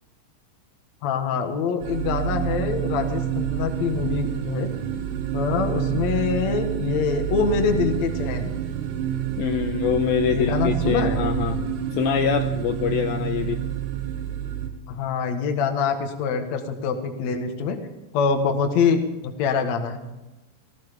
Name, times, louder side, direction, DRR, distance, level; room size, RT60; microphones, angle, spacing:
voice 1, 1.0-4.7 5.3-8.6 10.3-11.2 14.9-17.8 18.1-20.0, left 5 dB, 60° left, 5 dB, 2.0 m, -25 dB
sound 1, 1.8-14.7, right 11 dB, 80° right, 3.7 m, -28 dB
voice 2, 9.4-13.6, left 9 dB, 90° left, 7 dB, 2.1 m, -25 dB
18.0 x 14.0 x 5.2 m, 1.1 s
omnidirectional pair, 5.1 m